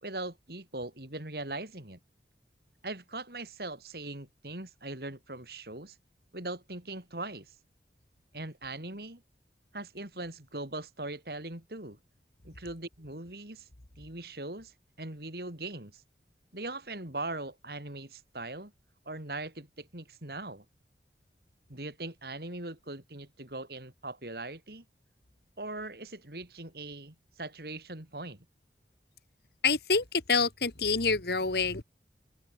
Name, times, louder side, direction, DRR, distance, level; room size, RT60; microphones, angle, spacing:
voice 1, 0.0-2.0 2.8-6.0 6.3-7.5 8.3-9.2 9.7-12.0 12.4-13.7 14.0-16.0 16.5-18.7 19.1-20.6 21.7-24.8 25.6-28.4, right 2 dB, 60° right, 3.8 m, -40 dB
voice 2, 29.6-31.8, left 4 dB, 65° left, 1.8 m, -27 dB
head